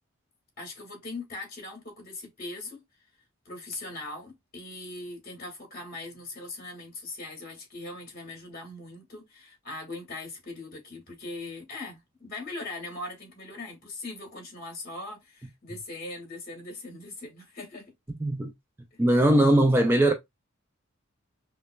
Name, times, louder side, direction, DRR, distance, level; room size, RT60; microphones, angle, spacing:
voice 1, 0.6-2.8 3.5-17.9 18.9-19.0, left 2 dB, 45° left, 1.7 m, -40 dB
voice 2, 18.2-18.5 19.0-20.1, right 1 dB, 10° right, 0.3 m, -20 dB
5.2 x 2.2 x 2.2 m
head